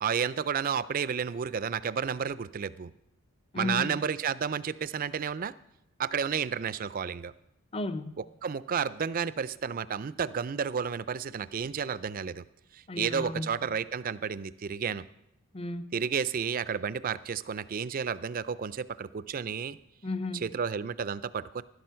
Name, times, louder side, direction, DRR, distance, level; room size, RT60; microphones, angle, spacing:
voice 1, 0.0-2.9 3.6-5.5 6.0-7.3 8.4-12.4 12.7-15.1 15.9-19.8 20.4-21.6, right 7 dB, 40° right, 17 dB, 0.4 m, -31 dB
voice 2, 3.5-4.0 7.7-8.1 12.9-13.5 15.5-15.9 20.0-20.5, left 2 dB, 25° left, 12 dB, 0.6 m, -34 dB
12.0 x 11.5 x 5.7 m, 0.83 s
head